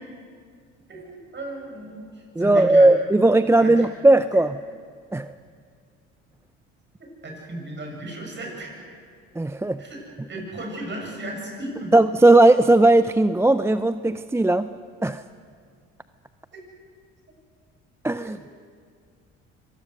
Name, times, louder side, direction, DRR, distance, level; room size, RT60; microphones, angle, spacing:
voice 1, 0.9-2.9 3.6-3.9 4.4-4.5 7.2-8.7 9.8-10.0 10.3-11.9 16.5-16.6 18.2-18.3, right 1 dB, 35° right, 0 dB, 7.9 m, -35 dB
voice 2, 2.4-4.6 5.1-5.3 9.4-9.8 11.9-14.7 15.0-15.2 18.0-18.4, right 2 dB, 10° right, 13 dB, 0.5 m, -17 dB
25.0 x 19.5 x 6.5 m, 2.1 s
supercardioid pair, 70°, 31 cm